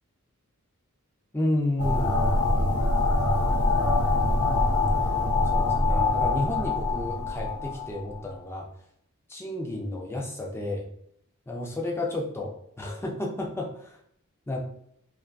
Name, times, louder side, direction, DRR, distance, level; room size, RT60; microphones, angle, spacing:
voice 1, 1.3-2.2 4.9-5.2 5.5-8.7 9.3-10.9 11.5-12.5 12.8-14.0 14.5-14.6, left 1 dB, 10° left, -1 dB, 0.3 m, -31 dB
sound 1, 1.8-8.2, left 2 dB, 70° left, 0.6 m, -24 dB
2.3 x 2.2 x 2.4 m, 0.69 s
head